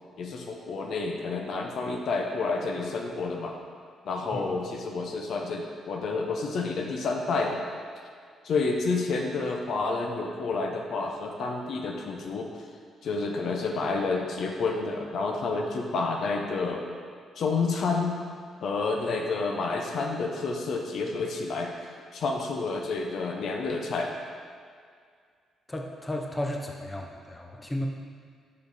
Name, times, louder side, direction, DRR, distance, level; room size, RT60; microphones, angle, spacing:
voice 1, 0.2-3.5 4.1-7.6 8.4-12.5 13.0-16.8 17.4-18.2 18.6-21.7 22.1-24.1, left 3 dB, 65° left, 2 dB, 0.6 m, -29 dB
voice 2, 25.7-27.9, left 1 dB, 15° left, 1 dB, 0.6 m, -33 dB
5.2 x 4.9 x 4.0 m, 2.1 s
cardioid pair, 90°, 0 cm